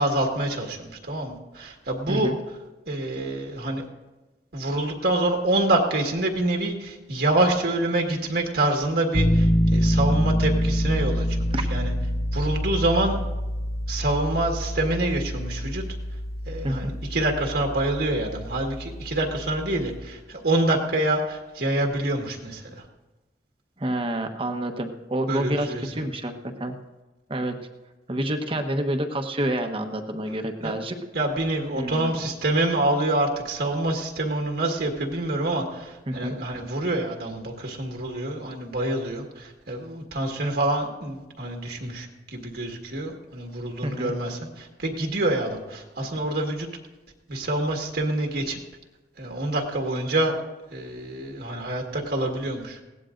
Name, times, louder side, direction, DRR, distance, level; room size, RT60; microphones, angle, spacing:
voice 1, 0.0-2.3 2.9-3.9 4.5-11.9 12.3-13.2 13.9-15.8 16.4-22.8 25.3-25.9 30.6-30.7 31.1-46.7 47.3-48.6 49.2-50.4 50.7-52.8, right 1 dB, 65° right, 1 dB, 1.7 m, -26 dB
Piano, 9.1-20.0, equal, 20° left, 0.5 m, -26 dB
voice 2, 16.6-16.9 23.8-26.7 27.3-27.6 28.1-30.9 31.7-32.1 36.1-36.4 43.8-44.1, right 1 dB, 30° right, 6 dB, 1.0 m, -28 dB
20.5 x 16.5 x 2.6 m, 1.1 s
head